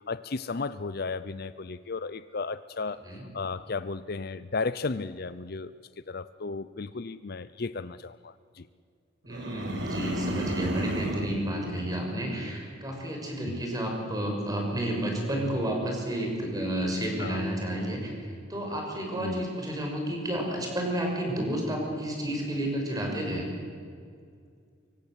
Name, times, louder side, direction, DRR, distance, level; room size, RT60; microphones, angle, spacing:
voice 1, 0.1-3.0 3.3-5.7 6.1-8.7 13.5-13.6 17.2-17.4 19.2-19.4, left 4 dB, 50° left, 15 dB, 0.6 m, -34 dB
voice 2, 9.3-23.5, right 1 dB, 20° right, 1 dB, 6.2 m, -31 dB
sound 1, 9.3-11.4, right 1 dB, 60° right, 2.6 m, -33 dB
25.0 x 24.0 x 8.2 m, 2.3 s
head